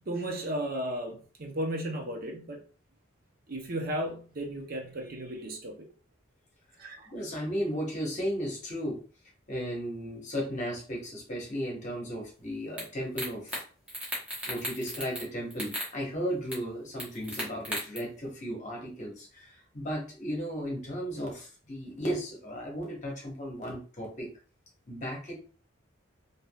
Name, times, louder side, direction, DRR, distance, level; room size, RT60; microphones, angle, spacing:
voice 1, 0.1-2.6 3.5-5.9 6.8-7.1, right 1 dB, 45° right, 2 dB, 0.6 m, -34 dB
voice 2, 7.1-9.0 9.5-13.6 14.5-24.3 24.9-25.3, equal, 35° left, -2 dB, 1.0 m, -35 dB
sound 1, 12.8-12.9 13.2-13.6 13.9-15.2 15.5-15.9 16.5-16.6 17.0-18.0, equal, 5° right, 0.9 m, -35 dB
3.5 x 2.6 x 2.2 m, 0.40 s
head